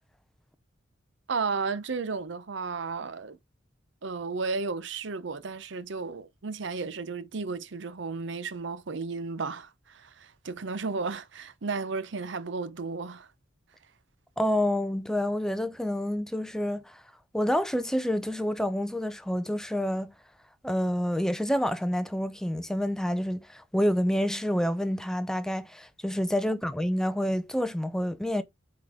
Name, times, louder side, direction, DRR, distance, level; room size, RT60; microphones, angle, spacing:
voice 1, 1.3-3.4 4.0-13.3, right 4 dB, 65° right, 0.7 m, -33 dB
voice 2, 14.4-17.0 17.3-20.1 20.6-28.4, equal, 5° left, 0.6 m, -28 dB
7.9 x 3.9 x 3.5 m
head